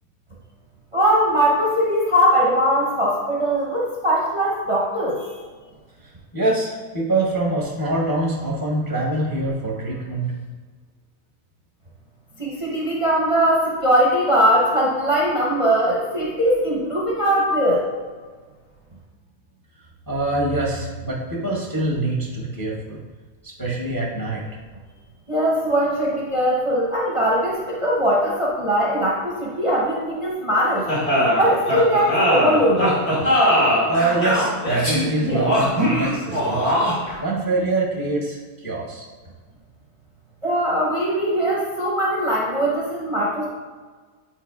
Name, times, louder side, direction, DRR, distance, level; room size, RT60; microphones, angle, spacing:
voice 1, 0.9-5.4 12.4-17.9 25.3-30.9 31.2-33.0 40.4-43.5, equal, 30° right, -4 dB, 0.7 m, -20 dB
voice 2, 6.0-10.3 20.1-23.0 23.4-24.6 33.9-36.8 37.2-39.1, right 2 dB, 20° left, -4 dB, 0.7 m, -25 dB
sound 1, 30.9-37.1, equal, 75° left, 2.4 m, -20 dB
8.7 x 4.6 x 2.3 m, 1.5 s
omnidirectional pair, 1.5 m